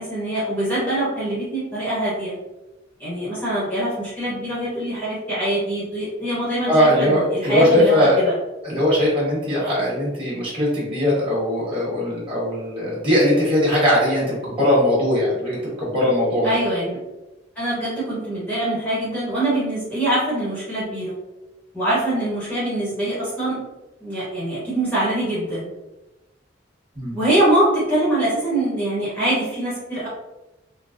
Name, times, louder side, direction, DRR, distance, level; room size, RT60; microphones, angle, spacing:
voice 1, 0.0-2.4 3.0-8.4 16.4-17.0 17.6-21.1 21.7-23.6 24.0-25.7 27.1-30.1, right 1 dB, 10° left, -9 dB, 0.9 m, -23 dB
voice 2, 6.7-8.2 8.6-16.5 26.9-27.2, left 1 dB, 30° right, -7 dB, 1.4 m, -20 dB
3.8 x 2.1 x 2.5 m, 1.0 s
head